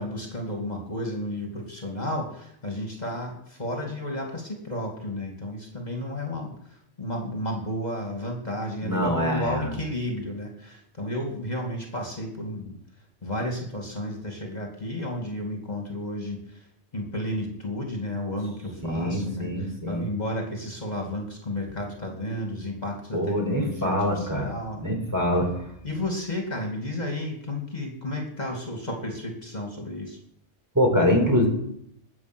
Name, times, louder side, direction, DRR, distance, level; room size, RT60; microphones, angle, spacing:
voice 1, 0.0-6.5 7.0-12.8 13.2-16.4 16.9-24.9 25.8-30.2, left 1 dB, 35° left, 1 dB, 2.6 m, -32 dB
voice 2, 8.8-9.8 18.8-20.1 23.1-25.6 30.7-31.5, equal, 15° right, 1 dB, 4.0 m, -24 dB
21.0 x 7.8 x 6.2 m, 0.72 s
omnidirectional pair, 1.2 m